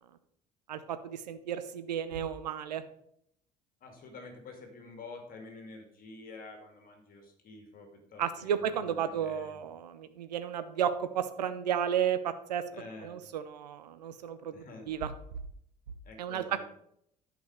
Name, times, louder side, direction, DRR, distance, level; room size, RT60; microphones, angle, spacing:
voice 1, 0.7-2.8 8.2-12.6 13.0-15.1 16.2-16.6, right 9 dB, 75° right, 11 dB, 0.8 m, -33 dB
voice 2, 3.8-9.6 12.7-13.2 14.5-14.9 16.0-16.6, left 3 dB, 45° left, 4 dB, 2.4 m, -48 dB
11.0 x 5.2 x 5.0 m, 0.72 s
figure-of-eight pair, 60°, 21 cm